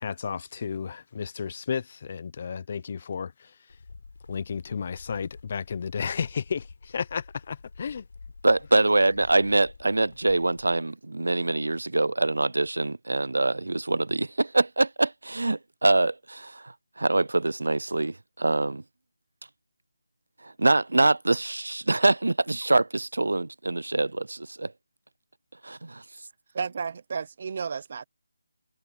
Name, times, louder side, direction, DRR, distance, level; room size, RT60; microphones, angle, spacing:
voice 1, 0.0-3.5 4.3-8.0, left 6 dB, 30° left, 0.9 m, -33 dB
sound 1, 3.7-10.8, left 4 dB, 55° left, 7.9 m, -49 dB
voice 2, 8.4-16.6 17.0-18.8 20.6-24.7 25.6-26.0, right 2 dB, 90° right, 0.4 m, -24 dB
voice 3, 26.5-28.0, right 5 dB, 35° right, 0.7 m, -32 dB
figure-of-eight pair, 175°, 0 cm